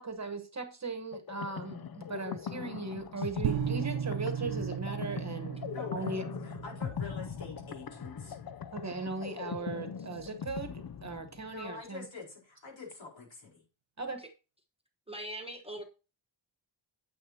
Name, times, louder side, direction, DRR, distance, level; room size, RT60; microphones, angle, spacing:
voice 1, 0.0-5.6 5.9-6.2 8.7-12.0 14.0-14.2, right 3 dB, 35° right, 1.2 m, -38 dB
sound 1, 1.1-11.7, left 7 dB, 50° left, 0.5 m, -40 dB
sound 2, 3.4-8.7, right 9 dB, 80° right, 0.6 m, -36 dB
voice 2, 5.7-8.4 11.5-13.6, left 4 dB, 70° left, 4.5 m, -46 dB
voice 3, 15.1-15.8, right 1 dB, 10° right, 1.2 m, -41 dB
9.4 x 8.2 x 2.8 m
wide cardioid pair, 170°, 47 cm